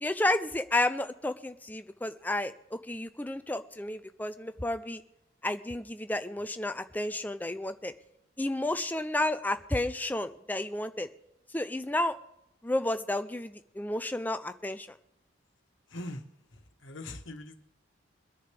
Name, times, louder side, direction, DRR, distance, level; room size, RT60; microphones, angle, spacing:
voice 1, 0.0-5.0 5.4-7.9 8.4-11.1 11.5-12.2 12.6-14.9, left 1 dB, 10° left, 10 dB, 0.5 m, -31 dB
voice 2, 15.9-16.2 16.5-17.6, left 1 dB, 80° left, 7 dB, 1.3 m, -41 dB
23.5 x 9.9 x 3.5 m, 0.86 s
head